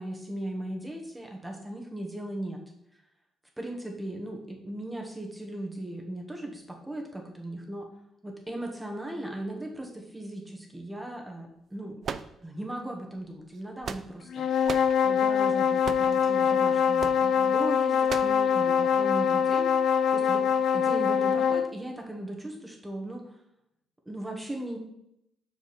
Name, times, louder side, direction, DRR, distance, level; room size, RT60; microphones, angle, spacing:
voice 1, 0.0-2.6 3.6-7.9 8.2-12.0 12.4-14.5 15.0-20.4 20.7-23.4 24.0-24.8, right 1 dB, 10° right, 1 dB, 1.5 m, -38 dB
sound 1, 12.0-12.8 13.5-14.3 14.7-15.0 15.8-16.2 17.0-17.2 18.1-18.4, right 6 dB, 55° right, 0.4 m, -36 dB
sound 2, 14.3-21.7, left 7 dB, 65° left, 0.3 m, -24 dB
6.4 x 4.7 x 4.2 m, 0.80 s
cardioid pair, 90°, 0 cm